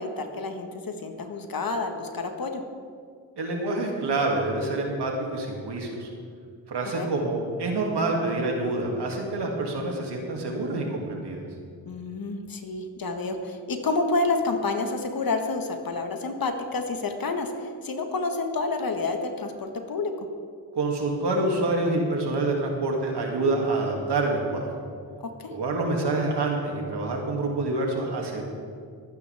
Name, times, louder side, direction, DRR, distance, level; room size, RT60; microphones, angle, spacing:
voice 1, 0.0-2.6 7.0-7.1 11.9-20.1 25.2-25.5, left 3 dB, 50° left, 5 dB, 1.7 m, -29 dB
voice 2, 3.4-6.1 6.7-11.4 20.7-24.7 25.5-28.5, right 2 dB, 60° right, 0 dB, 2.7 m, -27 dB
23.0 x 9.5 x 3.6 m, 2.2 s
cardioid pair, 60°, 45 cm